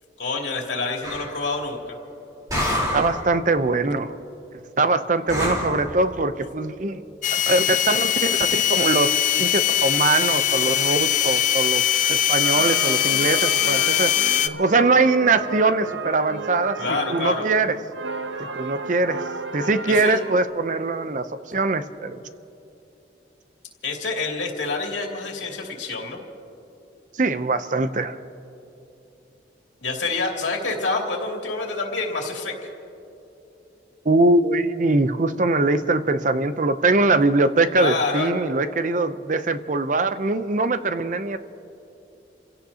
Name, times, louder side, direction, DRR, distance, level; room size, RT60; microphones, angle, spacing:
voice 1, 0.2-1.8 16.8-17.5 19.9-20.2 23.8-26.2 29.8-32.5 37.8-38.3, left 3 dB, 85° left, 0 dB, 2.7 m, -27 dB
sound 1, 1.0-1.4 2.5-3.3 5.3-5.8, left 1 dB, 20° right, 3.7 m, -26 dB
voice 2, 2.9-4.1 4.8-7.0 7.3-9.1 9.4-16.8 17.1-17.8 18.6-19.2 19.5-22.2 27.2-28.2 34.0-41.4, right 3 dB, 45° right, 11 dB, 0.6 m, -22 dB
sound 2, 7.2-14.5, left 11 dB, 45° left, 0.4 m, -21 dB
sound 3, 12.4-20.5, right 3 dB, 80° right, 0.8 m, -33 dB
29.5 x 16.5 x 2.8 m, 2.9 s
head